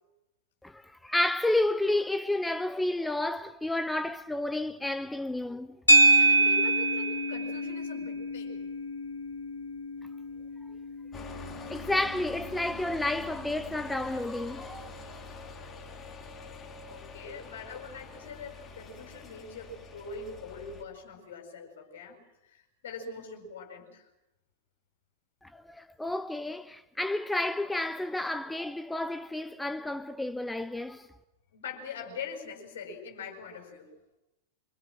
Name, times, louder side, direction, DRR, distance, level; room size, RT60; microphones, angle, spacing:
voice 1, 0.6-5.8 11.6-14.9 25.4-31.1, left 1 dB, 5° left, 0.9 m, -31 dB
sound 1, 5.9-14.3, right 2 dB, 80° left, 3.7 m, -27 dB
voice 2, 6.1-8.7 16.8-22.2 22.4-24.1 31.5-33.9, left 4 dB, 60° left, 7.6 m, -43 dB
sound 2, 11.1-20.8, left 2 dB, 20° left, 3.8 m, -45 dB
27.0 x 26.5 x 6.3 m
figure-of-eight pair, 90°, 0 cm